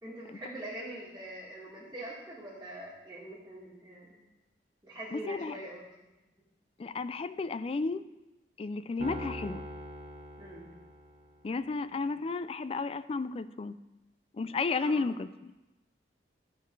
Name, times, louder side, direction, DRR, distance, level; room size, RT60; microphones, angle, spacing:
voice 1, 0.0-4.1 4.8-5.8 10.4-10.7 14.8-15.1, right 1 dB, 15° right, -10 dB, 2.0 m, -43 dB
voice 2, 5.1-5.6 6.8-8.1 8.6-9.6 11.4-13.7 14.4-15.5, left 4 dB, 35° left, 13 dB, 0.3 m, -33 dB
Piano, 9.0-11.4, equal, 35° right, 1.1 m, -42 dB
13.5 x 4.7 x 4.6 m, 1.0 s
head